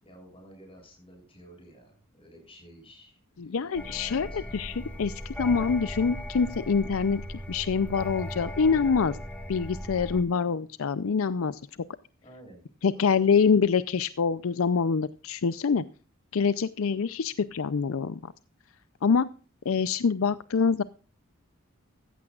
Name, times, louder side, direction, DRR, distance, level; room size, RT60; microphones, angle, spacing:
voice 1, 0.0-4.7 12.2-13.4, equal, 25° left, 3 dB, 7.2 m, -53 dB
voice 2, 3.4-7.2 7.5-9.2 9.5-11.6 12.8-15.8 16.3-18.2 19.0-19.3 19.7-20.8, left 5 dB, 70° left, 15 dB, 0.5 m, -25 dB
sound 1, 3.7-10.2, equal, 5° left, 1.8 m, -38 dB
15.0 x 14.5 x 2.4 m, 0.36 s
head